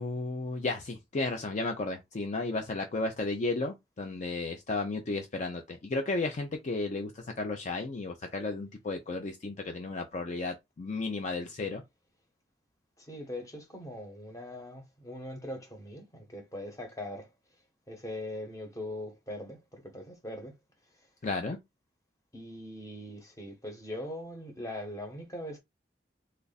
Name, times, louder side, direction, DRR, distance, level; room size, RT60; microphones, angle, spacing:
voice 1, 0.0-11.8 21.2-21.6, left 3 dB, 45° left, 0.5 m, -33 dB
voice 2, 13.0-17.3 17.9-20.5 21.0-21.1 22.3-25.6, left 1 dB, 20° left, 1.0 m, -41 dB
3.2 x 2.4 x 4.0 m
head